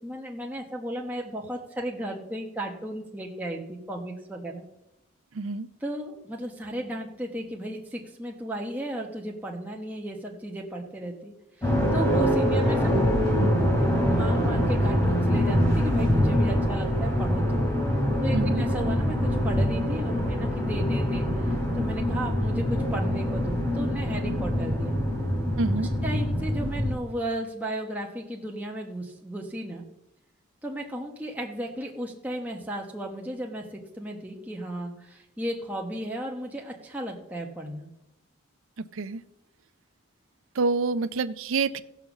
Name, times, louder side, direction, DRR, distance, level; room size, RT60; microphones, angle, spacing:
voice 1, 0.0-4.6 5.8-11.3 11.6-13.0 14.1-17.6 18.2-24.9 26.0-29.8 30.6-37.9, right 1 dB, 5° right, -1 dB, 1.2 m, -35 dB
voice 2, 5.3-5.7 18.3-18.6 25.6-25.9 38.8-39.2 40.6-41.8, right 4 dB, 70° right, 13 dB, 0.5 m, -27 dB
sound 1, 11.6-26.9, equal, 15° left, 3.7 m, -24 dB
15.0 x 5.8 x 7.1 m, 0.88 s
head